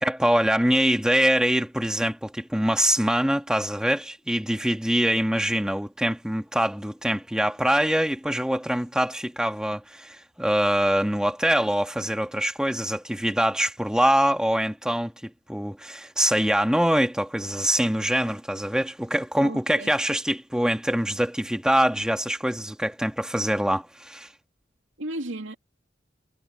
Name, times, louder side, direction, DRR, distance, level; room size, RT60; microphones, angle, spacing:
voice 1, 0.0-24.3, equal, 5° right, 1.5 m, -24 dB
voice 2, 19.4-19.9 25.0-25.6, right 1 dB, 90° right, 2.6 m, -34 dB
head